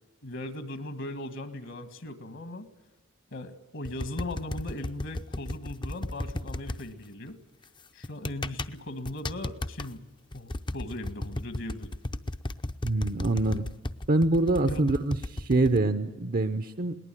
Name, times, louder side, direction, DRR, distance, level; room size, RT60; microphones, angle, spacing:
voice 1, 0.2-2.7 3.3-7.4 7.9-10.0 10.3-11.9 14.6-14.9, left 1 dB, 65° left, 11 dB, 1.8 m, -38 dB
sound 1, 3.8-6.8 8.0-8.7 9.1-9.9 10.3-15.8, left 1 dB, 25° left, 0.7 m, -34 dB
voice 2, 12.8-13.7 14.1-17.0, right 2 dB, 45° right, 10 dB, 0.8 m, -25 dB
21.0 x 19.0 x 9.2 m, 1.2 s
head